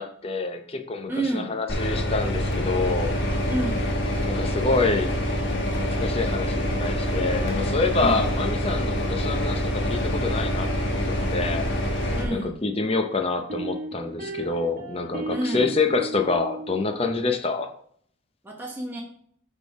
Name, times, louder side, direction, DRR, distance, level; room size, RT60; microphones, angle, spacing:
voice 1, 0.0-3.1 4.3-5.1 5.8-10.7 11.1-11.7 12.3-17.7, left 3 dB, 30° left, 5 dB, 0.7 m, -27 dB
voice 2, 1.1-1.5 3.5-3.9 8.0-8.3 12.1-12.6 15.3-15.7 18.4-19.0, right 1 dB, 10° right, -1 dB, 1.0 m, -29 dB
sound 1, 1.7-12.3, equal, 60° left, 1.5 m, -26 dB
sound 2, 13.5-17.0, right 2 dB, 40° right, 1.2 m, -35 dB
8.2 x 3.6 x 4.8 m, 0.64 s
head